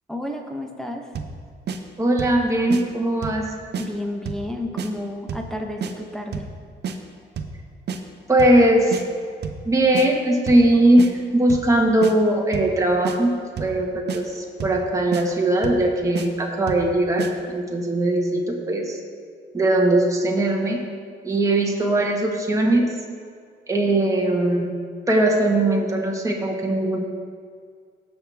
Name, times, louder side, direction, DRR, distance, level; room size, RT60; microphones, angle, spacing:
voice 1, 0.1-1.1 3.8-6.5, left 1 dB, ahead, 1 dB, 1.1 m, -31 dB
sound 1, 1.1-1.4 1.7-1.8 2.2-2.4 2.7-2.8 3.2-3.4 3.7-3.9 4.3-4.5 4.8-4.9 5.3-5.5 5.8-5.9 6.3-6.5 6.8-7.0 7.4-7.6 7.9-8.0 8.4-8.6 8.9-9.0 9.4-9.6 9.9-10.1 10.5-10.7 11.0-11.1 11.5-11.7 12.0-12.1 12.5-12.8 13.0-13.2 13.6-13.8 14.1-14.2 14.6-14.8 15.1-15.2 15.6-15.9 16.1-16.3 16.7-16.9 17.2-17.3, right 6 dB, 60° right, 0.9 m, -29 dB
voice 2, 2.0-3.5 8.3-9.0 9.6-19.0 19.5-20.8 21.2-22.9 23.7-24.7 25.1-27.0, right 1 dB, 15° right, -1 dB, 1.6 m, -20 dB
17.0 x 6.1 x 3.6 m, 2.1 s
cardioid pair, 90°, 20 cm